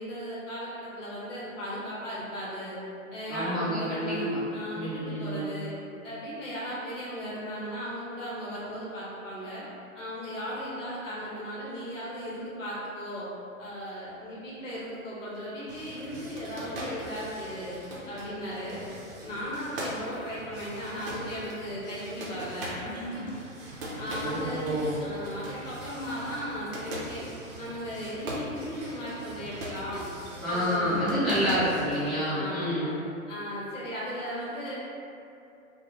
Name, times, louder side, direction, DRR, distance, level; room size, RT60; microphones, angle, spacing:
voice 1, 0.0-2.8 3.1-5.7 6.0-9.6 9.9-13.3 13.6-17.7 18.0-18.8 19.2-23.7 24.0-24.7 25.0-27.2 27.6-30.0 30.5-31.0 32.3-32.9 33.3-34.7, equal, 60° left, -8 dB, 0.9 m, -36 dB
voice 2, 3.3-4.4 4.7-5.5 24.2-24.9 30.4-32.9, equal, ahead, -16 dB, 0.7 m, -28 dB
sound 1, 15.7-32.2, right 1 dB, 40° right, 0.6 m, -40 dB
2.4 x 2.1 x 3.2 m, 2.7 s
figure-of-eight pair, 120°, 42 cm